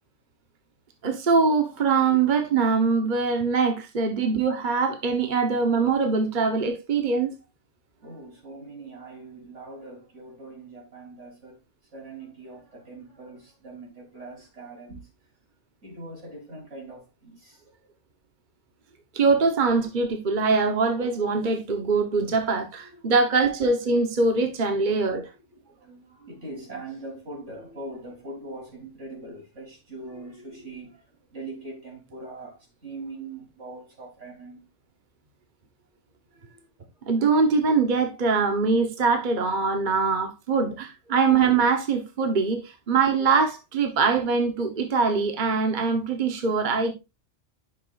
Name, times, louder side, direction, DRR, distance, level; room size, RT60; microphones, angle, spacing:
voice 1, 1.0-7.3 19.1-25.3 37.0-46.9, right 4 dB, 45° right, 1.2 m, -23 dB
voice 2, 8.0-11.6 11.9-15.1 15.8-17.7 22.8-23.2 24.8-24.9 25.5-34.6 36.3-36.6, right 2 dB, 80° right, 4.0 m, -42 dB
10.5 x 6.3 x 2.5 m
omnidirectional pair, 1.2 m